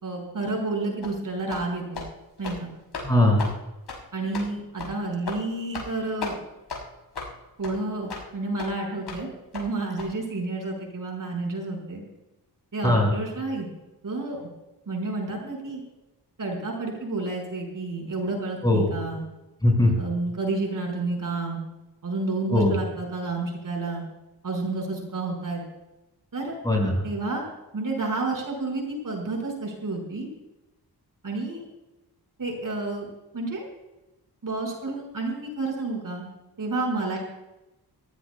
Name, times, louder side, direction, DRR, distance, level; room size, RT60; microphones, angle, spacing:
voice 1, 0.0-2.0 2.4-2.7 4.1-6.3 7.6-12.0 12.7-13.7 14.0-14.5 14.9-15.8 16.4-19.2 19.9-21.6 22.0-24.0 24.4-25.6 26.3-26.6 27.0-30.3 31.2-31.6 32.4-33.7 34.4-36.3 36.6-37.2, right 3 dB, 55° right, 1 dB, 5.6 m, -30 dB
sound 1, 1.0-1.2 1.5-1.7 1.9-2.1 2.4-2.6 2.9-3.1 3.4-3.5 3.9-4.0 4.3-4.5 4.8-4.9 5.3-5.4 5.7-5.9 6.2-6.4 6.7-6.8 7.1-7.3 7.6-7.7 8.1-8.2 8.6-8.7 9.1-9.2 9.5-9.7 10.0-10.1, left 4 dB, 90° left, 6.0 m, -34 dB
voice 2, 3.0-3.5 12.8-13.1 18.6-18.9 19.6-19.9 22.5-22.7 26.6-27.0, left 1 dB, 10° left, -1 dB, 5.8 m, -20 dB
27.0 x 15.5 x 2.3 m, 0.99 s
wide cardioid pair, 135°, 39 cm